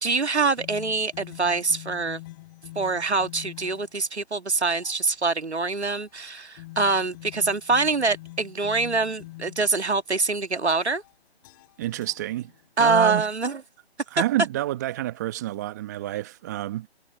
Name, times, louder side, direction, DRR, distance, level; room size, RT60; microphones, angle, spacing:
voice 1, 0.0-2.2 2.8-11.0 12.8-13.6, right 4 dB, 80° right, 1.9 m, -24 dB
sound 1, 0.6-4.0 4.7-5.1 5.8-6.2 6.6-10.0 10.7-11.1 11.4-12.8, left 19 dB, 20° left, 3.6 m, -45 dB
voice 2, 11.8-12.5 12.8-13.3 14.1-16.9, right 15 dB, 15° right, 1.3 m, -28 dB
figure-of-eight pair, 155°, 33 cm